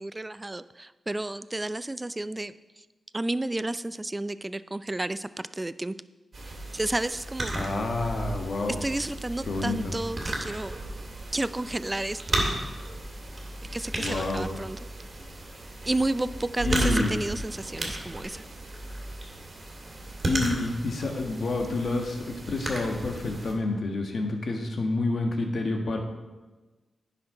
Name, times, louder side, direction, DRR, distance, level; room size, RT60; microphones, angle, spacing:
voice 1, 0.0-2.8 3.1-6.0 6.7-7.5 8.8-10.7 11.3-12.4 13.7-14.8 15.9-18.4, right 2 dB, 20° right, 15 dB, 0.4 m, -31 dB
sound 1, 6.3-23.5, right 1 dB, 40° right, 2.3 m, -34 dB
voice 2, 7.5-8.8 9.5-9.9 14.0-14.5 16.6-17.1 20.2-26.0, left 2 dB, 60° left, 3 dB, 1.4 m, -28 dB
9.9 x 5.9 x 5.4 m, 1.2 s
cardioid pair, 70°, 0 cm